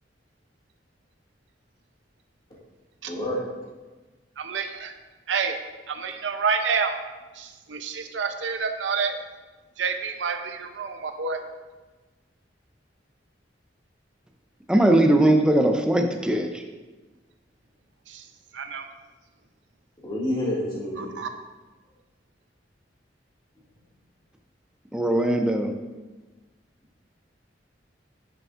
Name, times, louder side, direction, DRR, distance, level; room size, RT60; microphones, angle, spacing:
voice 1, 3.0-3.5 20.0-21.1, left 1 dB, 25° left, -7 dB, 2.2 m, -28 dB
voice 2, 4.4-4.9 5.3-5.6 5.9-6.9 7.3-9.2 9.8-11.4 18.1-18.3 18.5-18.9 21.0-21.3, right 5 dB, 90° right, 7 dB, 0.6 m, -28 dB
voice 3, 14.7-16.6 24.9-25.7, right 1 dB, 5° right, 4 dB, 0.5 m, -20 dB
10.5 x 5.2 x 2.5 m, 1.2 s
head